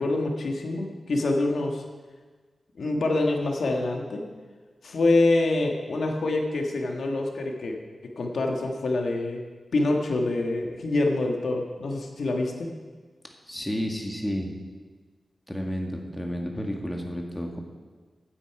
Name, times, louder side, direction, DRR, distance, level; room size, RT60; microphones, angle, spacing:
voice 1, 0.0-1.8 2.8-4.2 4.8-7.8 8.0-9.4 9.7-12.7, left 2 dB, 75° left, 2 dB, 1.5 m, -26 dB
voice 2, 13.5-14.5 15.5-17.6, equal, 10° left, 1 dB, 1.7 m, -31 dB
15.5 x 9.2 x 4.7 m, 1.4 s
wide cardioid pair, 115°, 0 cm